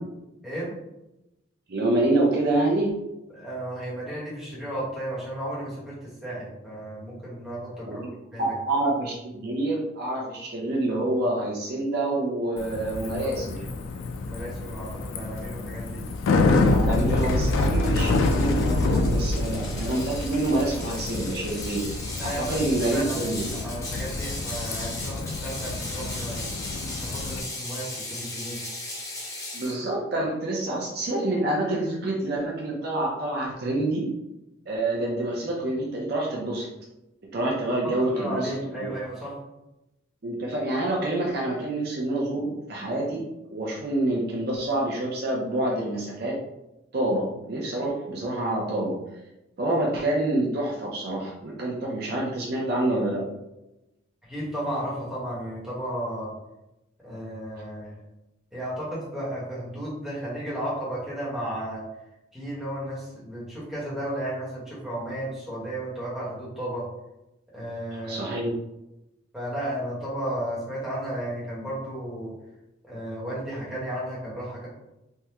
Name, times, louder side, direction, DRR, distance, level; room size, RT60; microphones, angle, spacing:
voice 1, 1.7-2.9 7.9-8.0 8.4-13.6 16.5-21.8 22.2-23.4 29.5-34.1 34.7-36.7 37.3-38.5 40.2-43.2 43.5-46.3 46.9-49.0 49.6-53.2 68.1-68.5, right 1 dB, 50° right, -2 dB, 0.5 m, -27 dB
voice 2, 3.3-8.5 13.2-13.7 14.3-16.0 22.2-26.4 27.0-28.6 38.0-39.3 54.2-56.3 57.0-58.0 58.5-61.8 62.3-66.8 67.5-68.4 69.3-72.3 72.8-74.7, right 1 dB, 5° right, -8 dB, 1.0 m, -34 dB
Bicycle, 12.6-27.4, left 2 dB, 80° left, 0.3 m, -27 dB
Ratchet pawl, 16.6-29.8, left 2 dB, 15° left, 0.6 m, -37 dB
3.4 x 2.1 x 2.9 m, 0.93 s
head